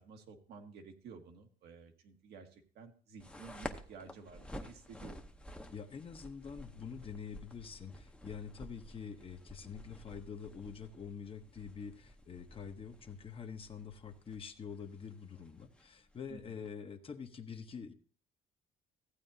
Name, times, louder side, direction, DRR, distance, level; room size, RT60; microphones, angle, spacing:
voice 1, 0.0-5.2 16.3-16.6, right 5 dB, 75° right, 4 dB, 1.4 m, -53 dB
sound 1, 3.2-16.7, left 1 dB, 5° left, 0.8 m, -51 dB
voice 2, 5.7-17.9, left 6 dB, 35° left, 7 dB, 0.9 m, -46 dB
14.5 x 8.4 x 2.7 m, 0.42 s
cardioid pair, 110°, 17 cm